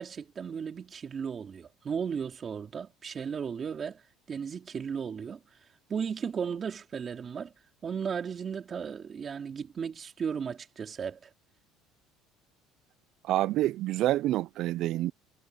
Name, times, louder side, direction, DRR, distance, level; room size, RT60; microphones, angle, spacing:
voice 1, 0.0-4.0 4.3-5.6 5.9-7.5 7.8-11.3, right 6 dB, 35° right, 3.4 m, -35 dB
voice 2, 13.2-15.1, right 15 dB, 60° right, 0.4 m, -27 dB
cardioid pair, 120°, 0 cm